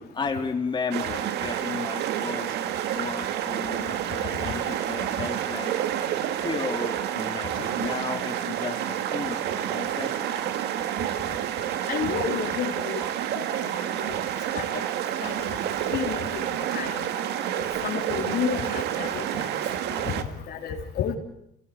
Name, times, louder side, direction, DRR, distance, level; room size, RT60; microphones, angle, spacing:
voice 1, 0.0-5.7 6.4-10.5, left 4 dB, 25° left, 2 dB, 3.0 m, -34 dB
sound 1, 0.9-20.2, right 10 dB, 80° right, 1.9 m, -29 dB
voice 2, 11.9-13.0 13.3-13.5 14.5-14.8 15.2-15.5 15.9-16.4 16.7-17.0 17.8-19.5 20.0-21.2, left 8 dB, 70° left, 3 dB, 3.6 m, -31 dB
29.0 x 18.5 x 8.5 m, 0.79 s
cardioid pair, 110°, 17 cm